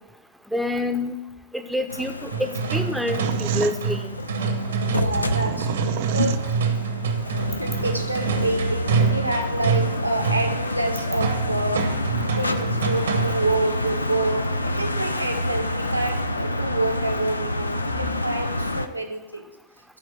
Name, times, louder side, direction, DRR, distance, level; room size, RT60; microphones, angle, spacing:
voice 1, 0.5-1.2 1.5-4.1, left 1 dB, ahead, 7 dB, 0.8 m, -27 dB
sound 1, 1.9-18.9, left 1 dB, 80° left, 0.5 m, -28 dB
sound 2, 2.3-13.6, right 5 dB, 65° right, 1.1 m, -26 dB
sound 3, 3.2-6.9, right 13 dB, 50° right, 0.4 m, -32 dB
voice 2, 4.9-6.7 7.6-11.9 12.3-19.5, right 2 dB, 90° right, 3 dB, 1.2 m, -28 dB
11.5 x 4.8 x 7.5 m, 1.0 s
figure-of-eight pair, 90°, 0 cm